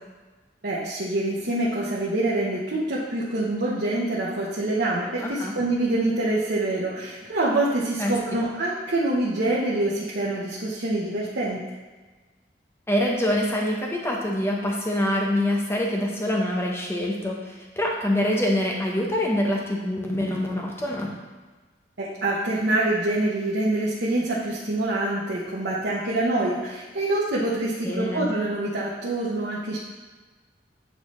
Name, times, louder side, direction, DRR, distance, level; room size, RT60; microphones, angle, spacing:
voice 1, 0.6-11.6 22.0-29.8, right 2 dB, 70° right, -7 dB, 1.0 m, -25 dB
voice 2, 5.2-5.5 8.0-8.2 12.9-21.1 27.8-28.3, left 1 dB, 15° left, -1 dB, 0.9 m, -25 dB
8.5 x 4.3 x 3.1 m, 1.3 s
head